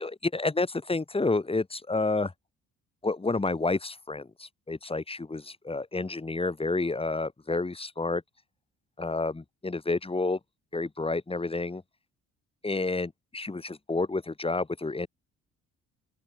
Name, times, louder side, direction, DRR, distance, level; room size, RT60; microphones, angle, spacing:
voice 1, 0.0-2.3 3.0-8.2 9.0-10.4 10.7-11.8 12.6-15.1, left 3 dB, 20° left, 3.0 m, -30 dB
open air
cardioid pair, 90°, 30 cm